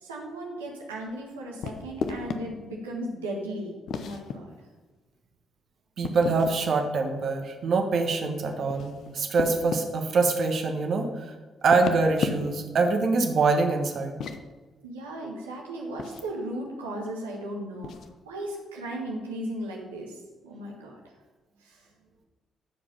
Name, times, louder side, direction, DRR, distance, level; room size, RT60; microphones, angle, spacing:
voice 1, 0.0-4.5 14.8-17.9 18.3-20.1 20.4-20.9 21.6-21.8, right 1 dB, 90° right, -2 dB, 1.3 m, -36 dB
sound 1, 1.6-2.4 3.9-4.4 6.0-6.6 8.5-9.9 11.6-12.7 14.0-14.4 16.0-16.3 17.8-18.1, left 6 dB, 65° left, 0.9 m, -33 dB
voice 2, 6.0-11.3 11.6-14.2, right 3 dB, 60° right, 4 dB, 1.5 m, -24 dB
14.5 x 5.0 x 5.6 m, 1.3 s
hypercardioid pair, 45°, 0 cm